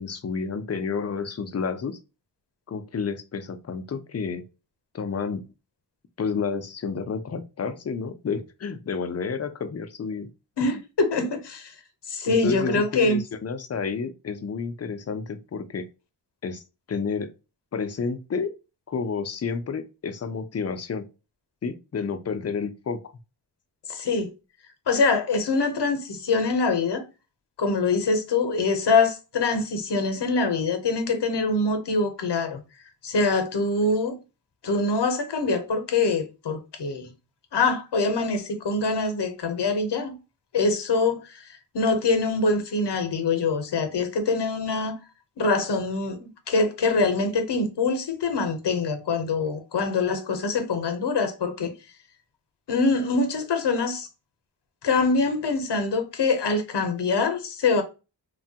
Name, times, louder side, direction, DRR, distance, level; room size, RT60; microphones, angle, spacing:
voice 1, 0.0-2.0 2.7-4.4 4.9-5.4 6.2-10.3 12.2-15.9 16.4-16.6 16.9-17.3 17.7-18.5 18.9-21.1 21.6-23.0, left 5 dB, 40° left, 0.4 m, -30 dB
voice 2, 10.6-11.7 12.1-13.2 23.9-24.3 24.9-27.0 27.6-32.6 33.0-34.2 34.6-37.1 37.5-40.1 40.5-45.0 45.4-51.7 52.7-54.1 54.8-57.8, left 3 dB, 75° left, 0.7 m, -24 dB
3.2 x 2.2 x 2.7 m
wide cardioid pair, 90°, 42 cm